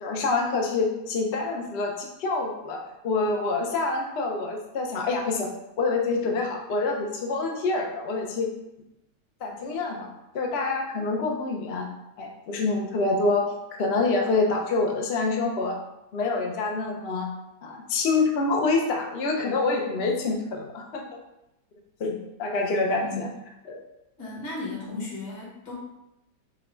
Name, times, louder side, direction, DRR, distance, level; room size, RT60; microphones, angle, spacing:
voice 1, 0.0-5.5 5.8-8.5 9.4-10.1 10.3-11.9 12.2-13.5 13.8-15.8 16.1-17.3 17.6-21.0 22.0-23.3 23.7-23.8, left 3 dB, 85° left, 1 dB, 0.5 m, -26 dB
voice 2, 24.2-25.7, left 3 dB, 70° left, -5 dB, 2.1 m, -35 dB
4.6 x 2.2 x 4.3 m, 0.88 s
omnidirectional pair, 2.0 m